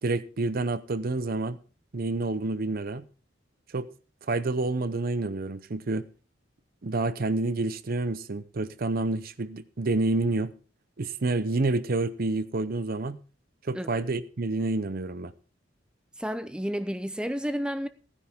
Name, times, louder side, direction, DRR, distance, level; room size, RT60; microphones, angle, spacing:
voice 1, 0.0-1.6 1.9-3.1 3.7-3.9 4.3-6.1 6.8-10.5 11.0-13.2 13.6-15.3, right 2 dB, 50° right, 0.7 m, -28 dB
voice 2, 16.2-17.9, equal, 5° right, 0.6 m, -31 dB
16.0 x 9.9 x 3.6 m
head